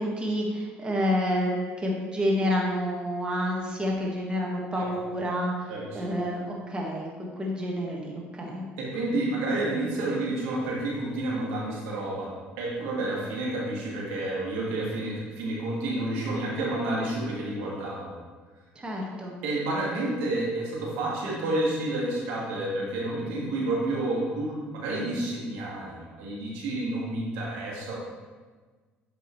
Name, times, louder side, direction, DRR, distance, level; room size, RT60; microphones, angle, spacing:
voice 1, 0.0-5.7 5.9-8.6 18.7-19.3, equal, 20° right, -2 dB, 1.5 m, -29 dB
voice 2, 5.7-6.2 8.8-12.3 12.6-18.1 19.4-27.9, right 2 dB, 90° right, -4 dB, 1.8 m, -30 dB
8.5 x 5.0 x 3.1 m, 1.4 s
cardioid pair, 95°, 4 cm